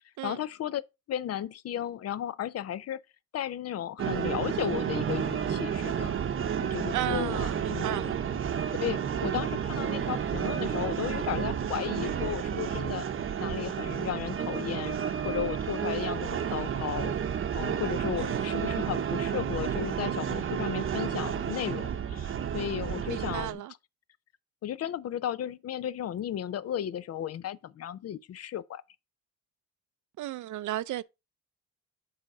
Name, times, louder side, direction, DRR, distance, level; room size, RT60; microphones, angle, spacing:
voice 1, 0.2-0.8 1.1-3.0 3.3-6.4 6.7-8.1 8.8-13.1 13.4-17.1 17.5-23.6 24.6-28.8, left 10 dB, 50° left, 0.5 m, -34 dB
sound 1, 4.0-23.5, right 8 dB, 40° right, 0.8 m, -31 dB
voice 2, 6.9-8.2 18.2-18.6 23.1-23.7 30.2-31.0, right 14 dB, 65° right, 0.5 m, -35 dB
7.7 x 4.2 x 4.8 m
cardioid pair, 120°, 32 cm